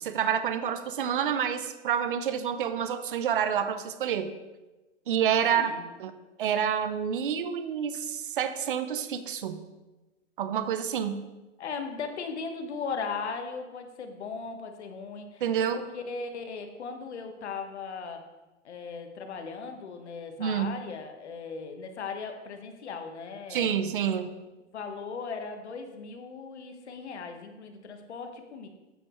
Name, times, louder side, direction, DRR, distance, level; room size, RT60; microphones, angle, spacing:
voice 1, 0.0-4.3 5.1-5.7 6.0-6.1 6.4-9.6 10.4-11.2 15.4-15.8 20.4-20.7 23.5-24.3, right 8 dB, 45° right, 10 dB, 0.6 m, -28 dB
voice 2, 5.5-5.8 11.6-15.4 15.7-18.2 18.6-23.7 24.7-28.7, left 5 dB, 65° left, 6 dB, 1.3 m, -38 dB
8.7 x 8.1 x 3.1 m, 1.1 s
hypercardioid pair, 170°, 37 cm